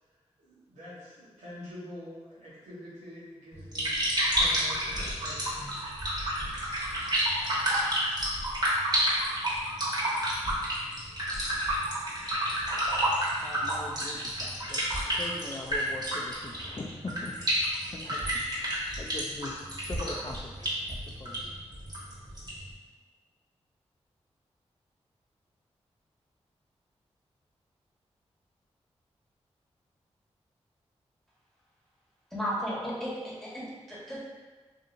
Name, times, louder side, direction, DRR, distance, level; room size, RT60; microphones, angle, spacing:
voice 1, 0.4-5.9, left 1 dB, 90° right, -9 dB, 1.0 m, -46 dB
sound 1, 3.5-22.7, right 1 dB, 35° right, 1.2 m, -30 dB
voice 2, 13.4-17.4 17.6-19.5 19.8-21.5, left 2 dB, 35° left, 0 dB, 0.4 m, -42 dB
voice 3, 32.3-34.2, equal, ahead, -7 dB, 1.2 m, -34 dB
2.7 x 2.7 x 2.5 m, 1.3 s
cardioid pair, 45°, 12 cm